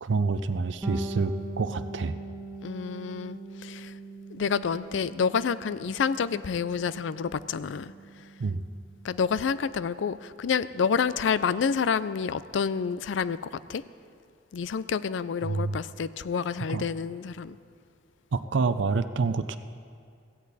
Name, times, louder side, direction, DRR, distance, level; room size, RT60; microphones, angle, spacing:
voice 1, 0.0-2.2 8.4-8.6 15.4-15.8 16.7-16.9 18.3-19.6, right 4 dB, 70° right, 11 dB, 0.5 m, -27 dB
Bass guitar, 0.8-10.4, right 2 dB, 10° right, 1.7 m, -42 dB
voice 2, 2.6-3.9 4.3-7.9 9.0-13.4 13.7-13.8 14.5-17.6, left 6 dB, 75° left, 16 dB, 0.4 m, -28 dB
16.5 x 15.0 x 4.1 m, 2.3 s
head